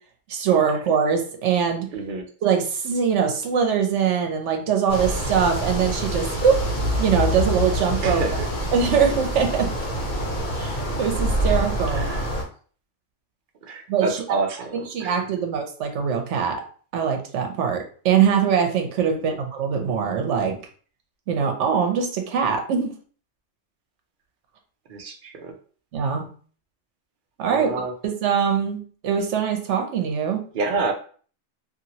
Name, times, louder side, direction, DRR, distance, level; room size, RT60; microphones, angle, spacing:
voice 1, 0.3-1.9 2.4-6.6 7.0-8.4 8.7-9.7 10.5-12.1 13.9-14.4 14.7-16.6 16.9-20.6 21.3-22.9 25.9-26.3 27.4-27.7 28.0-30.5, right 7 dB, 75° right, 4 dB, 1.0 m, -22 dB
voice 2, 1.9-2.2 8.0-8.5 11.9-12.3 13.7-15.2 19.1-19.4 24.9-25.5 27.5-27.9 30.5-30.9, right 3 dB, 55° right, 5 dB, 0.6 m, -28 dB
sound 1, 4.9-12.4, equal, 45° left, 1.1 m, -26 dB
2.8 x 2.6 x 2.8 m, 0.43 s
omnidirectional pair, 1.2 m